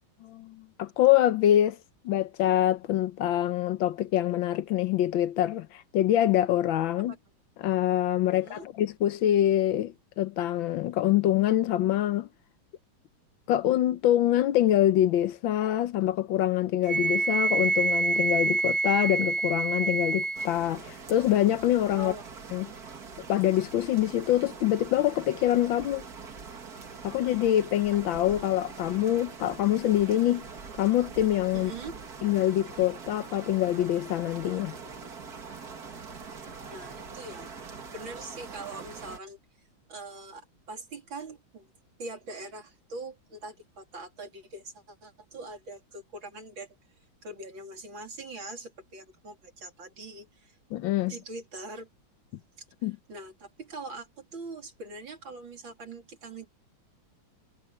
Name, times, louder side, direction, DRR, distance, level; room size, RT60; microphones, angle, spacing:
voice 1, 0.2-1.8 2.0-7.1 7.6-12.3 13.5-22.1 22.5-22.7 23.3-26.0 27.0-30.4 30.8-31.7 32.2-34.7 50.7-51.1 52.8-53.0, left 12 dB, 75° left, 1.5 m, -25 dB
Wind instrument woodwind instrument, 16.9-20.5, right 3 dB, 15° right, 2.9 m, -26 dB
sound 1, 20.3-39.2, right 5 dB, 50° right, 2.4 m, -43 dB
voice 2, 31.5-31.9 36.7-37.5 37.9-39.4 39.9-41.7 42.0-46.7 47.2-50.5 51.1-51.9 53.1-56.5, right 2 dB, 70° right, 3.9 m, -42 dB
omnidirectional pair, 2.2 m